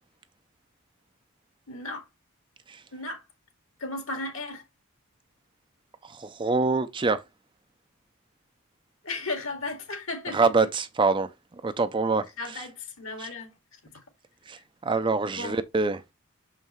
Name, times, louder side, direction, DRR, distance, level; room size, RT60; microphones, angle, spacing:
voice 1, 1.7-2.1 2.9-3.2 3.8-4.6 9.0-10.7 12.4-13.5 13.9-14.0 15.3-15.6, left 2 dB, 65° left, 2.3 m, -35 dB
voice 2, 6.0-7.2 10.3-11.3 11.6-12.3 12.5-12.6 13.2-13.3 14.5-16.0, right 4 dB, 20° right, 0.5 m, -25 dB
6.4 x 5.6 x 3.1 m
head